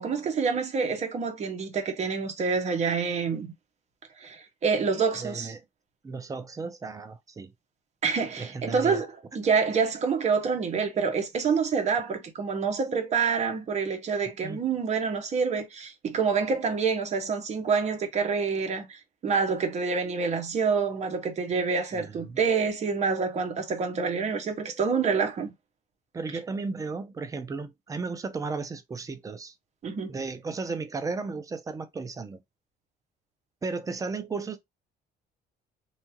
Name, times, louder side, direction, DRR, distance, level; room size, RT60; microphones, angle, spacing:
voice 1, 0.0-3.5 4.2-5.5 8.0-9.1 9.3-25.5 29.8-30.2, right 5 dB, 40° right, 0.9 m, -27 dB
voice 2, 5.2-5.6 6.0-7.5 8.4-9.0 14.4-14.6 21.9-22.4 24.6-24.7 26.1-29.5 30.1-32.4 33.6-34.6, right 4 dB, 20° right, 0.5 m, -34 dB
2.7 x 2.3 x 2.8 m
cardioid pair, 110°, 17 cm